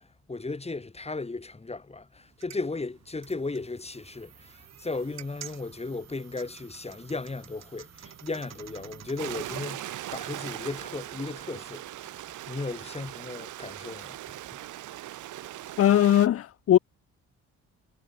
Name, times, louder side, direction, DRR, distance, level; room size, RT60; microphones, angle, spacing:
voice 1, 0.3-11.9 12.5-14.4, left 3 dB, 20° left, 5.4 m, -36 dB
sound 1, 2.2-9.6, right 10 dB, 60° right, 2.3 m, -49 dB
Stream, 9.2-16.3, right 14 dB, 80° right, 2.1 m, -39 dB
voice 2, 15.8-16.8, left 11 dB, 50° left, 0.7 m, -20 dB
cardioid pair, 90°, 30 cm